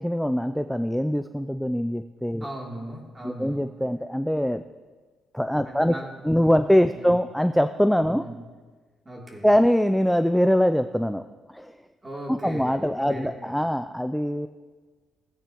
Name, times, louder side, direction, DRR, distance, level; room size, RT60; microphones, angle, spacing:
voice 1, 0.0-2.5 3.2-4.6 5.3-5.9 6.2-8.2 9.4-11.3 11.5-11.8 12.3-14.5, equal, ahead, 9 dB, 0.4 m, -23 dB
voice 2, 2.4-3.7 5.6-6.6 6.9-7.2 8.2-8.4 9.0-9.5 12.0-13.5, right 1 dB, 20° right, -2 dB, 2.9 m, -38 dB
17.0 x 8.9 x 3.0 m, 1.4 s
cardioid pair, 90°, 0 cm